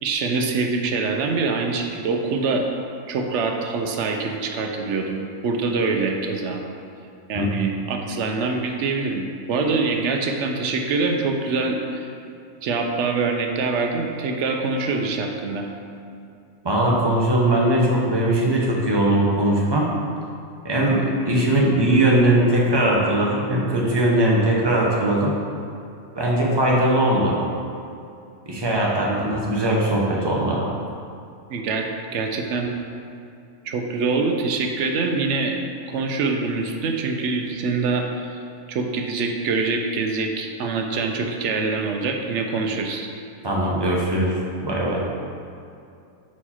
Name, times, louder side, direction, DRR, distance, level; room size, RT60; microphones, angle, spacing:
voice 1, 0.0-2.7 3.1-6.6 7.3-9.2 9.5-12.1 12.6-15.7 26.5-26.6 29.1-29.3 31.5-32.7 33.6-35.6 35.9-38.4 38.7-43.1, right 4 dB, 65° right, 3 dB, 0.8 m, -24 dB
voice 2, 16.6-19.9 20.6-25.3 26.1-27.4 28.5-30.6 43.4-44.3 44.6-45.0, right 1 dB, 20° right, -3 dB, 0.8 m, -20 dB
5.8 x 4.6 x 4.2 m, 2.5 s
omnidirectional pair, 1.4 m